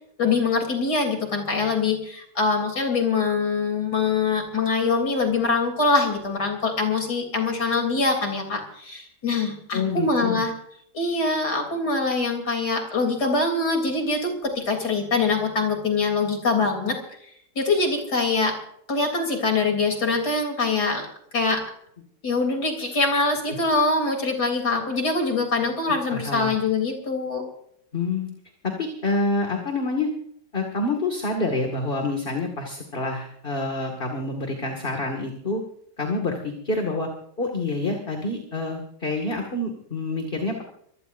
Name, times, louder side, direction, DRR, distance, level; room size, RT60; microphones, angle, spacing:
voice 1, 0.2-10.5 10.9-17.0 17.6-18.6 18.9-21.1 21.3-21.6 22.2-27.4, left 3 dB, 65° left, 3 dB, 4.0 m, -24 dB
voice 2, 9.7-10.4 23.5-23.6 26.1-26.6 27.9-28.3 28.6-30.1 30.5-35.6 36.0-37.1 37.4-40.6, left 2 dB, 30° left, 3 dB, 2.3 m, -27 dB
25.0 x 18.0 x 2.7 m, 0.69 s
omnidirectional pair, 1.9 m